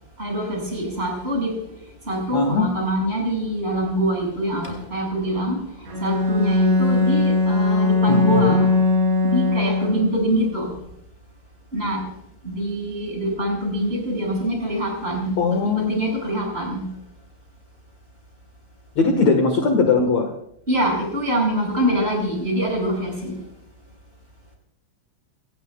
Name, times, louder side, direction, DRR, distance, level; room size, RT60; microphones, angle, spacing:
voice 1, 0.2-1.5 2.0-5.6 6.0-8.7 9.2-10.7 11.7-12.0 12.4-16.9 20.7-23.4, right 1 dB, 10° right, -1 dB, 6.7 m, -24 dB
voice 2, 2.3-2.7 8.1-8.6 15.4-15.9 19.0-20.3, left 4 dB, 60° left, 4 dB, 1.9 m, -20 dB
Bowed string instrument, 5.9-10.3, left 3 dB, 70° right, 6.5 m, -20 dB
27.5 x 17.5 x 2.4 m, 0.73 s
omnidirectional pair, 5.4 m